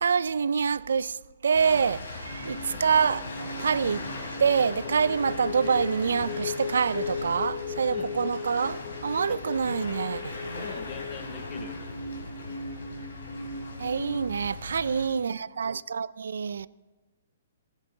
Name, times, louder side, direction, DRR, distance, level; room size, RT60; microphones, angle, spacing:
voice 1, 0.0-1.2 1.4-4.0 4.4-10.4 13.8-16.7, right 6 dB, 90° right, 0.3 m, -26 dB
sound 1, 1.5-15.1, left 2 dB, 85° left, 3.7 m, -39 dB
sound 2, 2.3-14.3, left 4 dB, 50° left, 1.2 m, -37 dB
voice 2, 10.6-11.8, left 8 dB, 15° left, 0.6 m, -44 dB
16.0 x 10.5 x 3.8 m
hypercardioid pair, 180°, 0 cm